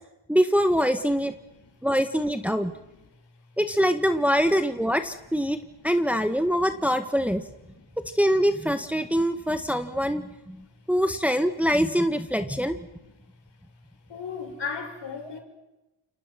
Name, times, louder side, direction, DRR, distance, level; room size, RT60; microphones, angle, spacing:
voice 1, 0.3-1.3 1.8-2.7 3.6-5.6 5.8-7.4 8.1-10.6 10.9-12.8, equal, 5° right, 1.7 m, -24 dB
voice 2, 14.1-15.4, left 5 dB, 60° left, 6.8 m, -35 dB
29.0 x 27.0 x 6.1 m
cardioid pair, 90°, 47 cm